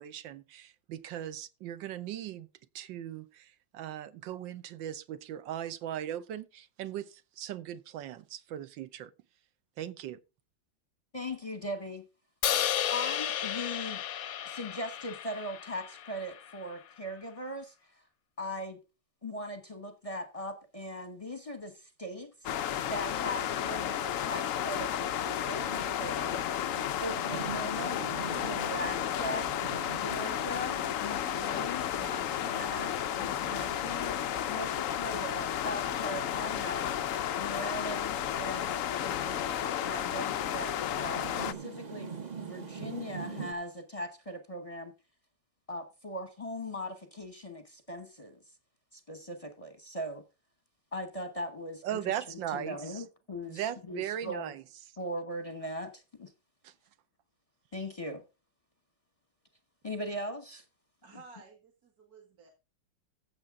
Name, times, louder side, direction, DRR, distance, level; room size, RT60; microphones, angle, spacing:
voice 1, 0.0-2.5 2.7-9.1 9.8-10.2 51.8-53.0 53.5-54.6 56.6-56.7, right 11 dB, 70° right, 1.5 m, -38 dB
voice 2, 11.1-12.1 12.9-14.0 14.4-18.0 18.4-18.8 19.2-22.5 22.8-26.6 27.0-28.1 28.4-29.5 29.8-34.1 34.5-36.9 37.4-44.9 45.7-48.4 48.9-50.2 50.9-54.5 55.0-56.3 57.7-58.2 59.8-60.6, equal, 25° left, 0.8 m, -40 dB
Crash cymbal, 12.4-16.6, left 10 dB, 60° left, 0.9 m, -33 dB
sound 1, 22.4-41.5, left 10 dB, 85° left, 0.7 m, -32 dB
Rain, 25.1-43.5, right 6 dB, 35° right, 0.7 m, -46 dB
voice 3, 61.0-62.5, right 4 dB, 50° right, 2.2 m, -54 dB
14.5 x 7.5 x 3.6 m
omnidirectional pair, 2.2 m